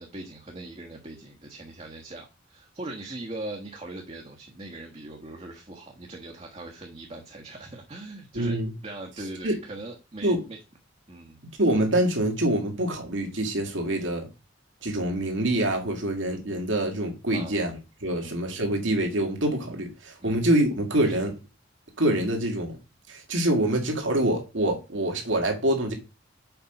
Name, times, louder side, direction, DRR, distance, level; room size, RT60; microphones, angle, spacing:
voice 1, 0.0-10.6 11.1-11.4 14.0-14.1 17.3-17.6 18.1-18.3 20.2-20.4 21.0-21.2, right 2 dB, 30° right, 1.4 m, -40 dB
voice 2, 8.3-8.7 9.4-9.5 10.2-10.4 11.6-14.3 14.8-21.3 22.0-22.8 23.1-25.9, right 1 dB, 70° right, 2.4 m, -25 dB
7.1 x 5.2 x 5.3 m
head